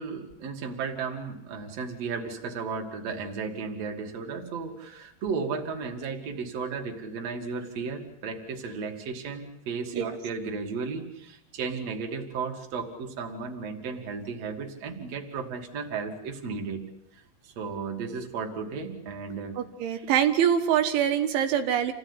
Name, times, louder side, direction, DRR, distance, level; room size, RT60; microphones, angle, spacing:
voice 1, 0.0-16.8 17.1-19.6 19.9-20.1, right 5 dB, 40° right, 2 dB, 3.2 m, -34 dB
voice 2, 19.6-21.9, right 9 dB, 80° right, 6 dB, 4.0 m, -24 dB
28.5 x 17.0 x 9.9 m, 0.77 s
omnidirectional pair, 5.3 m